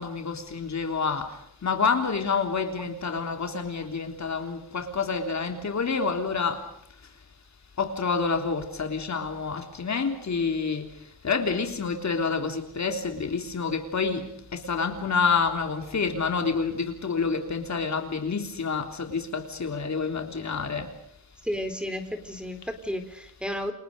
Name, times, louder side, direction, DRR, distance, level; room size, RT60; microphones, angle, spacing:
voice 1, 0.0-1.3 1.6-6.6 7.8-10.9 11.2-20.9, left 5 dB, 45° left, 5 dB, 3.5 m, -28 dB
voice 2, 21.4-23.7, equal, 5° right, 8 dB, 4.0 m, -32 dB
30.0 x 26.5 x 5.3 m, 0.73 s
wide cardioid pair, 135°, 38 cm